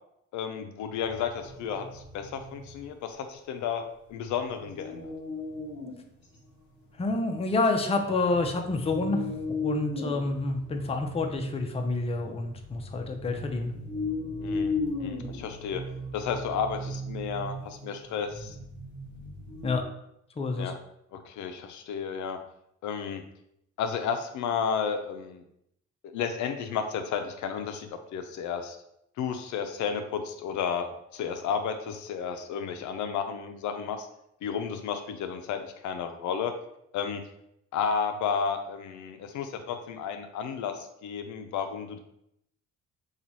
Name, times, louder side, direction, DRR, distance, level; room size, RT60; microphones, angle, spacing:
voice 1, 0.3-3.8 4.1-5.1 14.4-15.8 16.1-18.5 20.6-20.8 21.1-22.4 22.8-23.2 23.8-25.4 26.1-28.8 29.2-30.9 31.1-34.1 34.4-36.5 36.9-37.2 37.7-42.0, left 7 dB, 75° left, 7 dB, 0.5 m, -32 dB
sound 1, 1.0-2.8 4.6-6.0 6.4-6.5 7.0-7.5 8.0-19.8, left 2 dB, 35° left, 1.2 m, -36 dB
voice 2, 7.0-13.7 19.6-19.8 20.4-20.7, left 3 dB, 20° left, 4 dB, 0.5 m, -28 dB
3.0 x 2.3 x 3.9 m, 0.78 s
cardioid pair, 90°, 30 cm